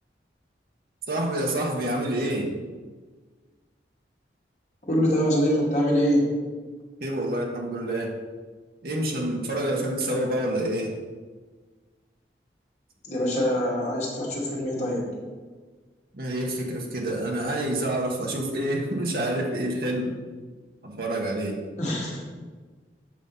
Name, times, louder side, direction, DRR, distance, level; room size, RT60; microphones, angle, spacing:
voice 1, 1.1-2.5 7.0-8.1 8.8-10.9 16.1-20.1 20.8-21.6, right 1 dB, 55° right, 0 dB, 1.4 m, -27 dB
voice 2, 4.8-6.3 13.0-15.0 21.8-22.2, equal, 40° left, -4 dB, 2.3 m, -24 dB
8.2 x 5.4 x 5.4 m, 1.4 s
head